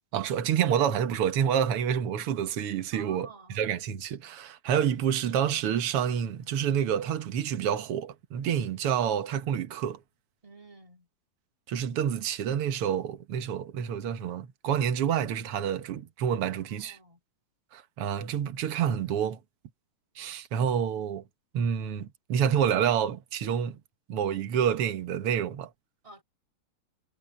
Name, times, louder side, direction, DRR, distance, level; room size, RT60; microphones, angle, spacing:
voice 1, 0.1-10.0 11.7-17.0 17.7-19.4 20.2-21.2 21.5-23.8 24.1-25.7, right 8 dB, 55° right, 1.8 m, -28 dB
voice 2, 2.9-3.6 10.4-11.1 16.4-17.2 26.0-26.2, right 3 dB, 10° right, 2.1 m, -51 dB
omnidirectional pair, 3.7 m